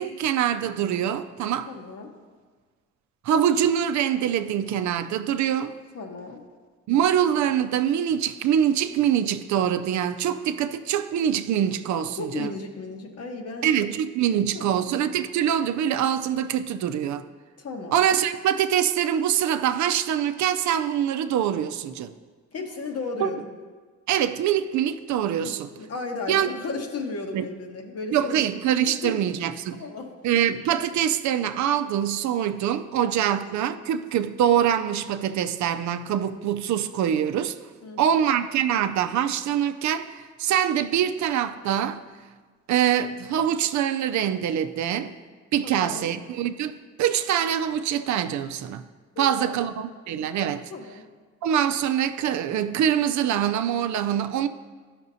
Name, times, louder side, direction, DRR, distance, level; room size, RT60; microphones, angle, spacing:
voice 1, 0.0-1.7 3.2-5.7 6.9-12.5 13.6-17.3 17.9-22.1 23.2-23.3 24.1-25.7 26.3-26.5 27.3-27.4 28.1-29.8 30.2-37.6 38.0-42.0 42.7-45.1 45.5-48.8 49.2-50.7 51.4-54.5, right 9 dB, 70° right, 0.5 m, -24 dB
voice 2, 1.7-2.1 5.9-6.4 12.2-13.7 14.5-14.9 17.6-18.0 22.5-23.5 25.4-28.5 29.0-29.2 29.7-30.1 37.8-38.3 45.6-46.1 49.2-49.6 50.7-51.0, left 3 dB, 55° left, 1.1 m, -35 dB
12.5 x 5.9 x 2.7 m
cardioid pair, 90°, 30 cm